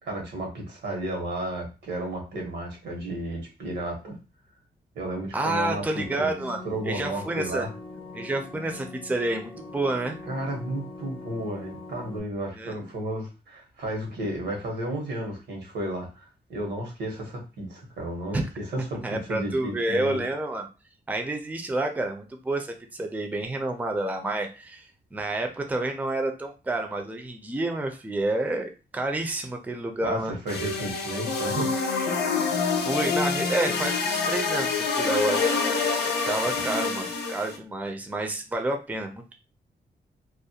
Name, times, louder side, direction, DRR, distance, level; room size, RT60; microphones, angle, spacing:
voice 1, 0.0-4.2 4.9-6.3 6.6-7.7 10.2-20.2 30.0-31.7, right 1 dB, 90° right, 0 dB, 1.0 m, -33 dB
voice 2, 5.3-7.7 8.1-10.2 12.5-12.7 18.3-18.5 19.0-20.7 21.1-30.3 32.8-35.6 36.3-39.3, right 2 dB, 10° right, 4 dB, 0.4 m, -29 dB
sound 1, 6.0-12.2, left 3 dB, 30° left, 0.6 m, -42 dB
sound 2, 30.5-37.6, left 4 dB, 75° left, 0.6 m, -26 dB
2.4 x 2.1 x 2.7 m, 0.31 s
wide cardioid pair, 110°, 17 cm